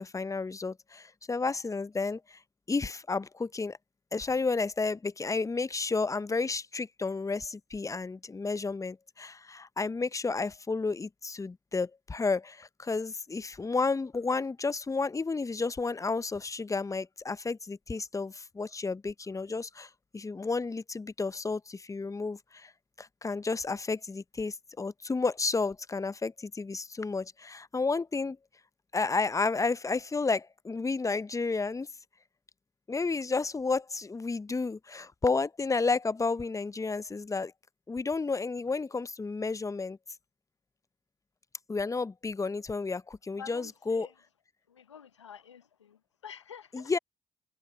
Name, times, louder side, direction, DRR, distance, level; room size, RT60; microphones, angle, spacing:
voice 1, 0.0-2.4 2.7-3.8 4.1-22.7 23.0-28.4 28.9-31.9 32.9-37.5 37.9-40.0 41.7-44.1 46.7-47.0, left 4 dB, 20° left, 0.8 m, -31 dB
voice 2, 43.3-44.1 44.7-46.9, left 7 dB, 90° left, 0.9 m, -48 dB
figure-of-eight pair, 45°, 15 cm